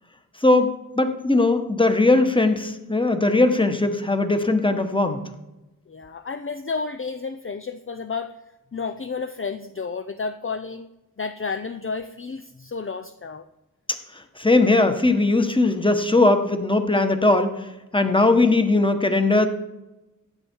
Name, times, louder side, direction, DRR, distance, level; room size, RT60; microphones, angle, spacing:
voice 1, 0.4-5.2 14.4-17.5 17.9-19.5, left 2 dB, 15° left, 7 dB, 1.5 m, -19 dB
voice 2, 5.9-8.3 8.7-10.9 11.2-13.5, left 4 dB, 40° left, 9 dB, 0.7 m, -31 dB
15.0 x 9.6 x 4.7 m, 0.99 s
wide cardioid pair, 50°, 34 cm